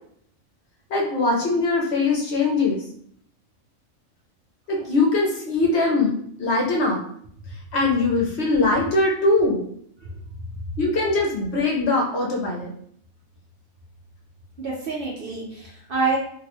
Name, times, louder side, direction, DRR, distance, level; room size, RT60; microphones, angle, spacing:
voice 1, 0.9-2.8 4.7-6.1 6.4-7.0 7.7-9.6 10.8-12.7, left 3 dB, 60° left, -1 dB, 0.8 m, -21 dB
voice 2, 14.6-16.2, right 4 dB, 55° right, -4 dB, 0.7 m, -27 dB
3.0 x 2.5 x 3.0 m, 0.65 s
omnidirectional pair, 1.4 m